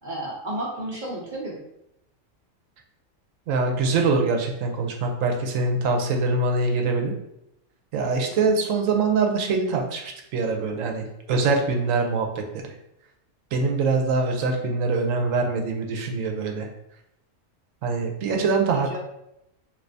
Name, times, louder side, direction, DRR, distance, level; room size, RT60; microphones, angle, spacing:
voice 1, 0.0-1.6 8.3-8.4 18.7-19.0, right 1 dB, 50° right, -4 dB, 0.6 m, -32 dB
voice 2, 3.5-7.1 7.9-12.7 13.5-16.7 17.8-19.0, right 3 dB, 90° right, 3 dB, 1.0 m, -24 dB
3.3 x 2.9 x 2.6 m, 0.82 s
omnidirectional pair, 1.3 m